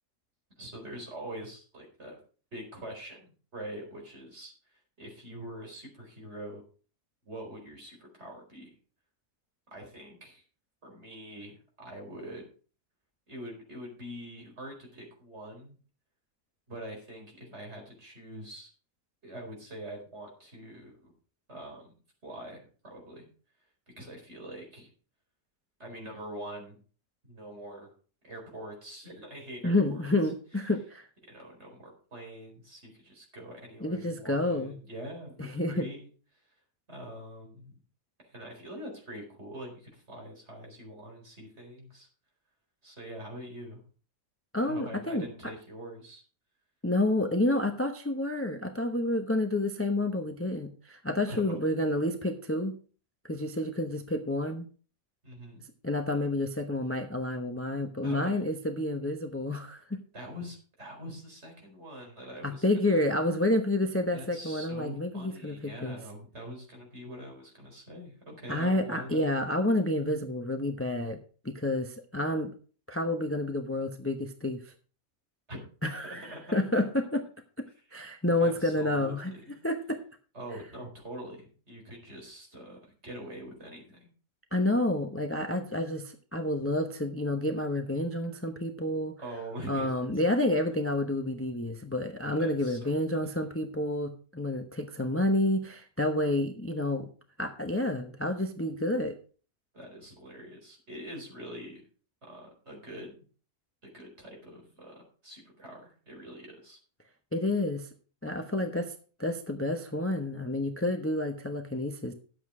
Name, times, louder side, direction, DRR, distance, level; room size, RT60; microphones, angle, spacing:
voice 1, 0.6-2.2 2.5-4.5 5.0-6.6 7.2-8.7 9.7-10.4 10.8-12.4 13.3-15.8 16.7-18.7 19.2-21.1 21.5-21.9 22.2-23.3 24.0-24.9 25.8-26.8 27.3-27.9 28.2-30.1 31.3-36.1 36.9-37.7 38.2-42.1 42.8-43.8 44.7-46.2 51.2-51.6 55.2-55.7 58.0-58.4 60.1-63.1 64.1-69.3 75.5-75.6 76.0-76.5 78.3-79.1 79.4-79.6 80.3-84.1 89.2-90.0 92.4-93.0 99.7-101.8 102.2-103.2 103.8-106.8, right 1 dB, 50° right, 1 dB, 4.7 m, -44 dB
voice 2, 29.6-31.1 33.8-34.7 35.4-35.9 44.5-45.3 46.8-52.7 53.2-54.6 55.8-60.0 62.4-66.0 68.5-71.2 71.4-72.5 72.9-74.6 75.8-77.3 77.9-79.3 79.6-80.0 84.5-89.1 89.7-97.1 97.4-99.1 107.3-107.9 108.2-108.9 109.2-112.1, left 1 dB, 10° left, 5 dB, 0.8 m, -29 dB
11.5 x 8.0 x 4.9 m, 0.40 s
omnidirectional pair, 1.5 m